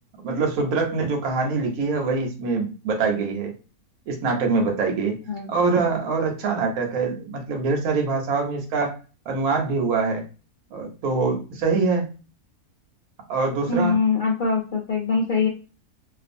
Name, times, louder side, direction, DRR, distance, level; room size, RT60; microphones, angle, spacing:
voice 1, 0.2-3.5 4.1-5.1 5.5-9.0 9.3-10.2 10.7-12.1 13.3-13.9, right 4 dB, 75° right, 2 dB, 1.1 m, -24 dB
voice 2, 13.7-15.5, left 4 dB, 75° left, -2 dB, 0.4 m, -23 dB
2.5 x 2.4 x 2.5 m, 0.34 s
omnidirectional pair, 1.6 m